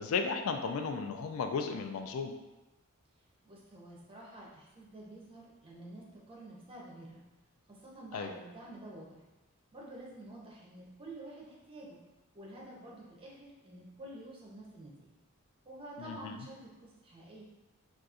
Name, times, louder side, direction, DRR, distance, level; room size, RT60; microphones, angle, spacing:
voice 1, 0.0-2.3 8.1-8.3 16.0-16.4, left 5 dB, 80° left, 5 dB, 0.3 m, -34 dB
voice 2, 3.4-7.2 7.7-9.2 9.7-12.0 12.3-15.2 15.6-17.4, right 1 dB, 25° right, -4 dB, 0.7 m, -49 dB
4.0 x 2.4 x 2.4 m, 1.1 s
head